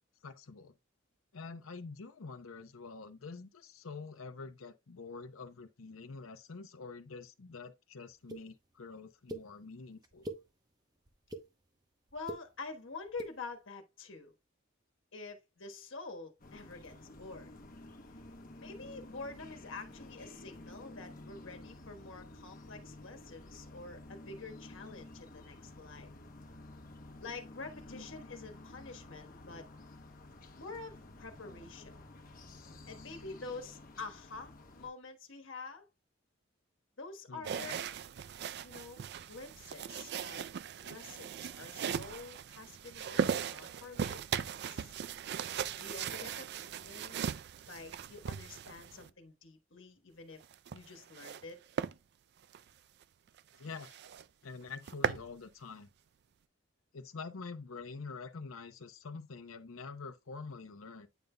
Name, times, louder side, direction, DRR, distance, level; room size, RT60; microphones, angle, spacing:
voice 1, 0.2-0.7 1.3-10.3 27.9-28.1 37.3-37.8 53.5-54.0 54.4-55.9 56.9-61.1, left 4 dB, 90° left, 0.7 m, -46 dB
sound 1, 8.3-8.4 9.3-9.4 10.0-10.4 11.1-11.4 12.1-12.4 13.1-13.3, right 1 dB, 20° right, 0.8 m, -41 dB
voice 2, 12.1-14.3 15.1-17.5 18.6-26.1 27.2-29.7 30.6-31.9 32.9-35.9 37.0-37.8 38.6-44.9 45.7-47.3 47.7-50.4 50.7-51.6, left 3 dB, 70° left, 1.3 m, -47 dB
sound 2, 16.4-34.9, left 2 dB, 45° left, 1.0 m, -52 dB
sound 3, 37.4-49.1 50.4-51.4 51.8-52.0 52.4-52.6 53.0-53.1 53.4-53.5 53.8-54.2 54.6-55.3, right 7 dB, 55° right, 0.3 m, -38 dB
9.2 x 5.2 x 2.2 m
head